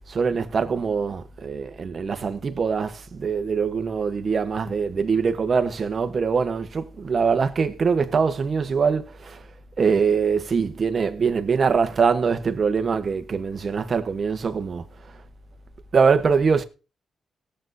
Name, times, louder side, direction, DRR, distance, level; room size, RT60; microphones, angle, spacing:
voice 1, 0.1-9.4 9.8-14.8 15.9-16.6, right 5 dB, 45° right, 1.0 m, -23 dB
19.0 x 7.7 x 2.7 m
cardioid pair, 115°, 0 cm